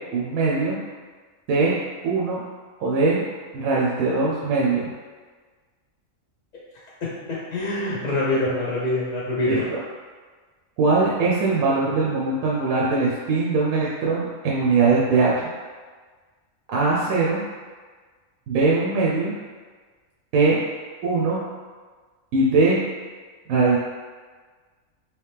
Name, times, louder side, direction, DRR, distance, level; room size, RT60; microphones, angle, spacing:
voice 1, 0.1-0.8 1.5-1.7 2.0-2.4 2.8-3.2 3.5-4.9 9.5-9.8 10.8-15.5 16.7-17.4 18.5-19.3 20.3-20.6 21.0-21.4 22.3-22.8 23.5-23.8, right 3 dB, 80° right, -5 dB, 1.0 m, -21 dB
voice 2, 7.5-9.6, left 2 dB, 50° left, -6 dB, 0.5 m, -24 dB
3.2 x 2.8 x 3.3 m, 1.5 s
omnidirectional pair, 1.4 m